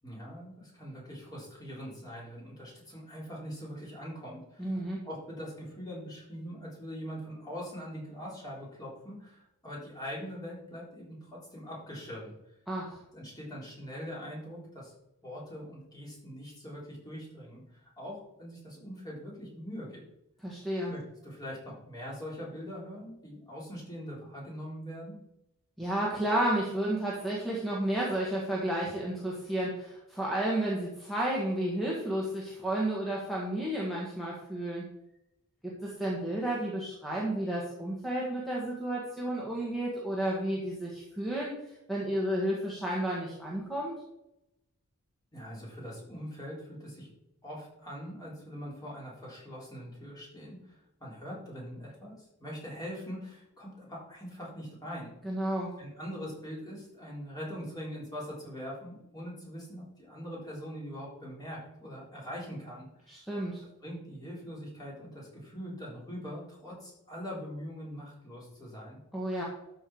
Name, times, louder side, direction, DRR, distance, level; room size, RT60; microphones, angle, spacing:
voice 1, 0.0-12.3 13.1-14.9 15.2-20.0 20.8-25.2 45.3-47.1 47.4-55.1 55.8-63.2 63.8-69.0, equal, 20° left, -5 dB, 3.7 m, -42 dB
voice 2, 4.6-5.0 12.7-13.0 20.4-20.9 25.8-34.8 35.6-41.6 41.9-43.9 55.2-55.7 63.1-63.6 69.1-69.4, right 1 dB, ahead, -5 dB, 1.6 m, -32 dB
12.5 x 4.7 x 4.9 m, 0.85 s
head